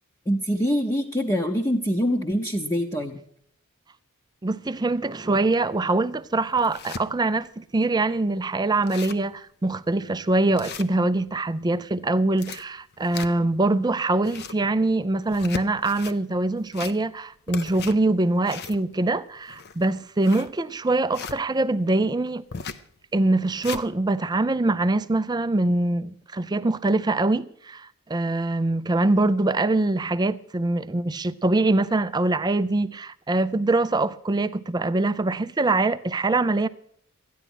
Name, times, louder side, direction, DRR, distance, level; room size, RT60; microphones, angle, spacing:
voice 1, 0.3-3.2, equal, 15° left, 0.8 m, -24 dB
voice 2, 4.4-22.4 23.1-36.7, right 2 dB, 20° right, 0.4 m, -23 dB
sound 1, 5.7-5.8 6.3-7.0 7.6-7.7 8.0-8.1 8.4-8.5 8.7-9.3 9.8-9.9 10.6-11.4 12.1-13.6 14.1-14.7 15.2-16.2 16.6-17.2 17.5-21.4 22.5-22.9 23.3-23.9, left 5 dB, 50° left, 0.6 m, -37 dB
14.0 x 10.0 x 6.1 m
head